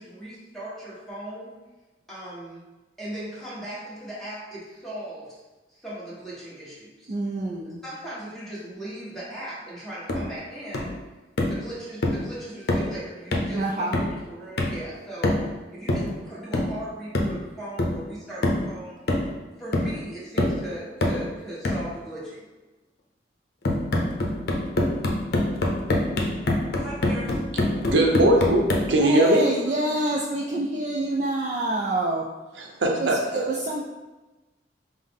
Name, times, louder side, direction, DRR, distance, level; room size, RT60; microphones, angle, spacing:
voice 1, 0.0-1.5 2.1-2.6 3.0-5.4 5.7-7.1 7.8-10.9 11.4-13.9 14.2-15.4 15.7-18.9 19.6-22.4 26.8-27.4, right 1 dB, ahead, -9 dB, 1.2 m, -38 dB
voice 2, 7.1-7.8 13.5-14.0 29.0-32.3 32.9-33.9, right 2 dB, 40° right, -1 dB, 0.3 m, -27 dB
sound 1, 10.1-10.3 10.7-11.0 11.4-11.6 12.0-12.3 12.7-12.9 13.3-13.6 13.9-14.2 14.6-14.8 15.2-15.5 15.9-16.1 16.5-16.8 17.1-17.4 17.8-18.0 18.4-18.7 19.1-19.4 19.7-20.0 20.4-20.6 21.0-21.3 21.6-21.9 23.6-28.9, left 1 dB, 60° left, 0.6 m, -25 dB
voice 3, 27.9-29.4 32.6-33.4, right 1 dB, 85° right, 1 dB, 0.7 m, -20 dB
5.6 x 2.0 x 3.5 m, 1.2 s
head